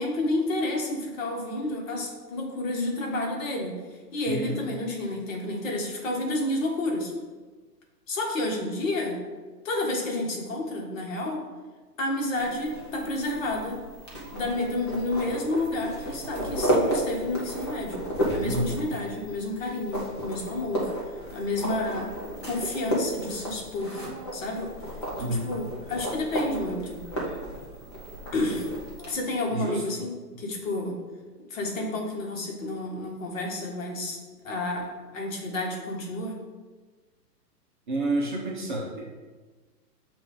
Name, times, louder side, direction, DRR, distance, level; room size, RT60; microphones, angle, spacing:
voice 1, 0.0-3.8 4.1-7.1 8.1-9.2 9.6-11.4 12.0-13.8 14.3-18.0 18.3-20.9 21.3-22.1 22.4-24.0 24.3-24.7 25.1-27.0 28.3-28.7 29.1-30.9 31.5-34.2 34.4-36.4, left 2 dB, 50° left, 0 dB, 1.4 m, -30 dB
voice 2, 4.3-4.6 18.4-18.8 25.2-25.5 29.5-29.8 37.9-39.1, right 1 dB, 30° right, -2 dB, 0.7 m, -29 dB
sound 1, 12.4-29.1, right 1 dB, 20° left, 0.5 m, -33 dB
7.2 x 2.5 x 5.2 m, 1.3 s
hypercardioid pair, 160°, 49 cm